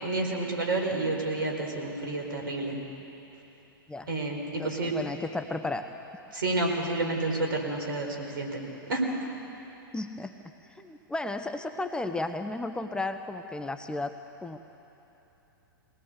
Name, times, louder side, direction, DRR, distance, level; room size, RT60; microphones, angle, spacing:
voice 1, 0.0-2.8 4.1-4.9 6.3-8.6 8.9-9.0, right 2 dB, 70° right, 1 dB, 4.6 m, -30 dB
voice 2, 4.6-5.9 9.9-10.3 10.8-14.1 14.4-14.6, left 2 dB, 5° left, 7 dB, 0.8 m, -33 dB
22.5 x 18.5 x 8.0 m, 3.0 s
figure-of-eight pair, 105°, 12 cm